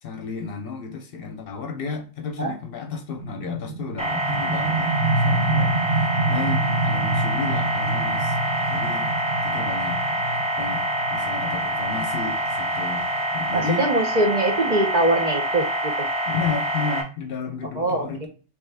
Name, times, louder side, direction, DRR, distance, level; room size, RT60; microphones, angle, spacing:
voice 1, 0.0-8.4 8.7-9.1 9.4-10.0 10.6-10.8 11.1-13.9 16.2-18.3, left 5 dB, 60° left, 0.8 m, -32 dB
sound 1, 3.2-14.7, right 3 dB, 90° right, 1.3 m, -28 dB
sound 2, 4.0-17.0, right 1 dB, 5° right, 0.7 m, -26 dB
voice 2, 13.5-16.1 17.8-18.3, right 2 dB, 50° right, 0.6 m, -23 dB
3.3 x 3.1 x 3.3 m
omnidirectional pair, 1.2 m